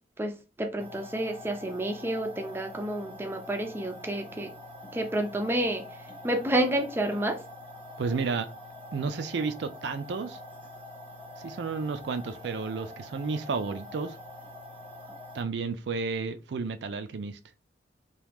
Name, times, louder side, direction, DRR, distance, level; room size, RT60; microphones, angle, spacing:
voice 1, 0.2-4.5 4.9-5.8 6.2-7.4, right 1 dB, 15° right, 0.4 m, -29 dB
sound 1, 0.8-15.4, left 1 dB, 10° left, 1.0 m, -45 dB
voice 2, 8.0-8.5 8.9-10.4 11.4-14.2 15.3-17.4, right 4 dB, 70° right, 0.4 m, -32 dB
3.0 x 2.3 x 3.4 m
head